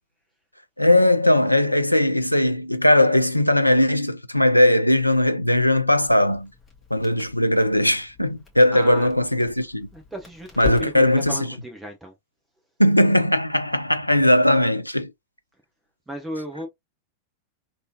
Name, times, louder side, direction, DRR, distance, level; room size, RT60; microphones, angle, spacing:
voice 1, 0.8-6.5 6.9-9.9 10.6-11.5 12.8-15.1, left 1 dB, 90° left, 0.4 m, -19 dB
Crackle, 6.1-11.4, left 5 dB, 10° left, 1.8 m, -39 dB
voice 2, 8.7-9.1 9.9-12.1 16.1-16.7, right 1 dB, 10° right, 1.3 m, -35 dB
3.5 x 3.0 x 2.8 m
figure-of-eight pair, 90°, 0 cm